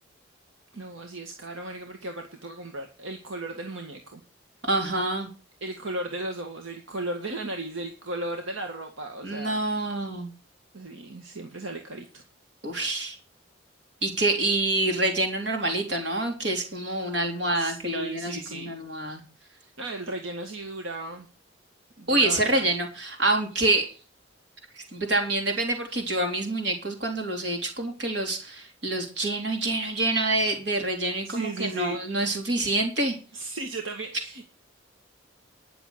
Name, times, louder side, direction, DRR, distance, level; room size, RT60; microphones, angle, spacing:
voice 1, 0.7-4.2 5.6-9.6 10.7-12.2 17.6-18.8 19.6-21.3 22.0-22.6 31.3-32.0 33.3-34.4, right 2 dB, 85° right, 4 dB, 1.8 m, -35 dB
voice 2, 4.6-5.3 9.2-10.3 12.6-13.2 14.0-19.2 22.1-23.9 24.7-33.1, right 2 dB, 60° right, 3 dB, 3.4 m, -27 dB
11.0 x 6.8 x 7.9 m, 0.35 s
head